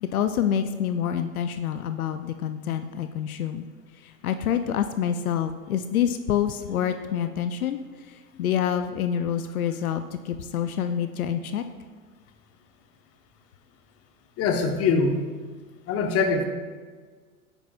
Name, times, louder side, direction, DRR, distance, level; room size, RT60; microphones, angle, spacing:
voice 1, 0.0-3.6 4.0-7.8 8.4-11.6, left 9 dB, 80° left, 9 dB, 0.6 m, -27 dB
voice 2, 14.4-15.2 15.9-16.4, left 4 dB, 35° left, 5 dB, 1.0 m, -23 dB
10.0 x 8.0 x 2.4 m, 1.5 s
hypercardioid pair, 95°, 42 cm